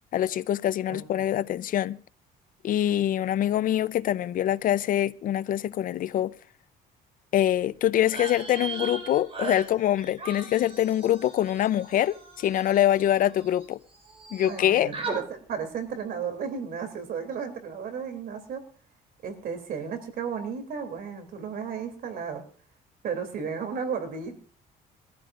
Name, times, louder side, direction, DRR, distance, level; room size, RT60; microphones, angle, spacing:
voice 1, 0.1-2.0 2.6-6.3 7.3-13.8 14.3-14.9, left 12 dB, 55° left, 0.6 m, -24 dB
voice 2, 0.9-1.2 14.4-18.6 19.2-22.4 23.0-24.4, right 6 dB, 60° right, 3.0 m, -34 dB
sound 1, 8.0-13.6 13.9-14.6 14.9-15.2, right 3 dB, 35° right, 5.8 m, -38 dB
22.5 x 14.5 x 2.5 m
cardioid pair, 110°, 17 cm